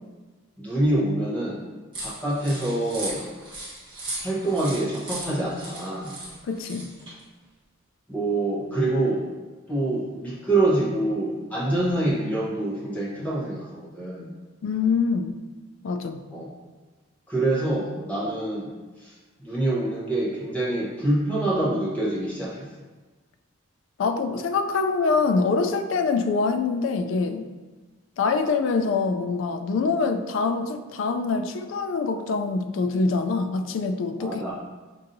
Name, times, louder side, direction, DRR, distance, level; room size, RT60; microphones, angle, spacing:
voice 1, 0.6-1.6 2.0-3.2 4.2-6.2 8.1-9.3 9.7-14.3 16.3-16.5 17.3-18.7 19.0-19.1 19.4-22.7 34.2-34.5, right 2 dB, 5° left, -7 dB, 0.9 m, -26 dB
sound 1, 1.9-7.2, right 2 dB, 25° right, 1.1 m, -37 dB
voice 2, 6.4-6.9 14.6-15.4 15.8-16.3 24.0-27.5 28.2-34.4, left 4 dB, 65° left, 8 dB, 0.3 m, -25 dB
5.3 x 2.6 x 2.6 m, 1.3 s
head